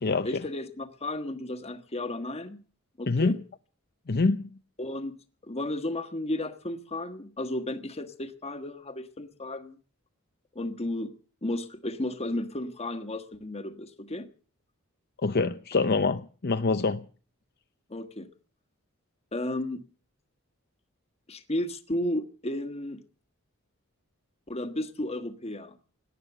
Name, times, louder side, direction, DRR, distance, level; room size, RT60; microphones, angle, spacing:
voice 1, 0.2-2.6 3.0-3.4 4.8-9.8 10.5-11.1 11.4-14.3 17.9-18.3 19.3-19.8 21.3-23.0 24.5-25.8, left 1 dB, 30° left, 1.4 m, -33 dB
voice 2, 4.1-4.5 15.2-17.1, left 3 dB, 50° left, 0.7 m, -25 dB
18.0 x 11.5 x 6.8 m
head